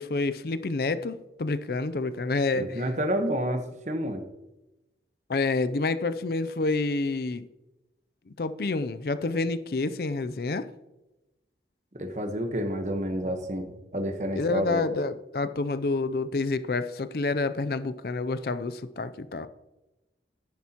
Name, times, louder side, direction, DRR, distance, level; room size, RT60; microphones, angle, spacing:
voice 1, 0.0-2.8 5.3-7.5 8.3-10.7 14.4-19.5, left 3 dB, 55° left, 13 dB, 0.5 m, -28 dB
voice 2, 2.5-4.2 11.9-14.8, equal, 40° right, 6 dB, 1.1 m, -29 dB
10.5 x 10.5 x 2.9 m, 0.97 s
head